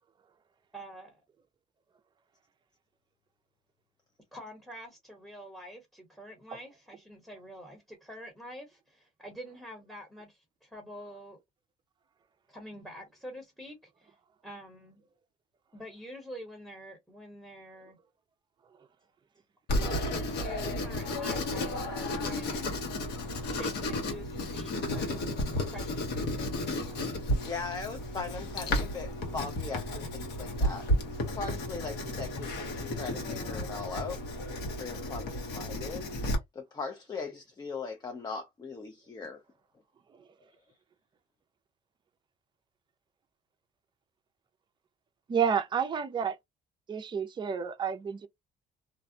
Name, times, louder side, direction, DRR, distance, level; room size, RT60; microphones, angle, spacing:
voice 1, 0.7-1.2 4.3-11.4 12.5-14.2 14.4-15.0 15.7-18.0 19.7-22.8 23.4-25.4 25.7-26.1, equal, ahead, 0.9 m, -46 dB
Writing, 19.7-36.3, left 1 dB, 80° left, 1.1 m, -33 dB
voice 2, 27.4-30.9 31.3-34.2 34.8-36.1 36.5-39.4, left 4 dB, 25° left, 0.5 m, -39 dB
voice 3, 45.3-46.4 46.9-48.3, right 7 dB, 25° right, 0.5 m, -30 dB
2.5 x 2.2 x 2.7 m
cardioid pair, 110°, 17 cm